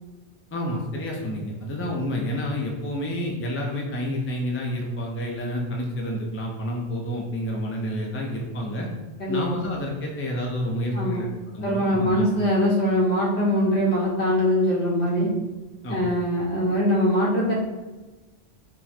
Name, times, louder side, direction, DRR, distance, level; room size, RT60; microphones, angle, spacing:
voice 1, 0.5-8.9 9.3-11.3 11.5-12.3 15.8-16.1, equal, 20° left, -1 dB, 0.3 m, -29 dB
voice 2, 11.6-15.3 15.9-17.5, equal, 70° left, -6 dB, 1.6 m, -22 dB
4.3 x 2.1 x 4.3 m, 1.1 s
omnidirectional pair, 1.2 m